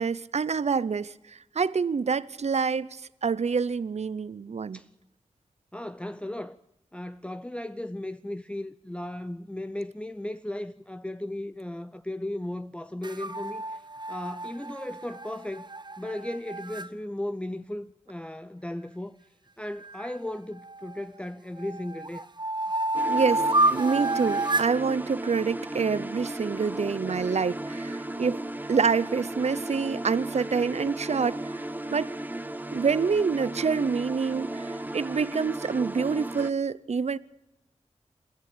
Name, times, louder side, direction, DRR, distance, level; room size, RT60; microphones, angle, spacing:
voice 1, 0.0-4.8 23.1-23.4 23.7-28.4 28.7-31.5 31.9-32.1 32.7-37.2, right 5 dB, 70° right, 0.7 m, -27 dB
voice 2, 5.7-6.6 6.9-13.8 14.1-15.7 16.0-19.2 19.6-22.2, left 1 dB, 10° left, 0.6 m, -36 dB
sound 1, 13.0-16.9 19.8-21.1 21.6-24.8, right 2 dB, 40° right, 1.3 m, -29 dB
sound 2, 22.9-36.5, right 1 dB, 15° right, 0.9 m, -35 dB
22.5 x 14.0 x 8.5 m
wide cardioid pair, 55°, 12 cm